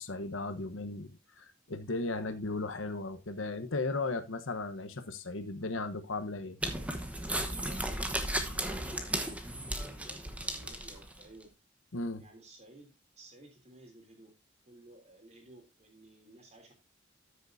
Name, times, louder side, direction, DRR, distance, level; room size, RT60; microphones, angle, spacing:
voice 1, 0.0-6.6 11.9-12.3, left 3 dB, 85° left, 1.1 m, -36 dB
sound 1, 6.6-11.2, right 1 dB, 5° right, 1.1 m, -35 dB
voice 2, 7.5-11.5 12.2-14.3 14.7-16.7, right 1 dB, 35° right, 3.3 m, -55 dB
13.0 x 6.6 x 2.7 m
head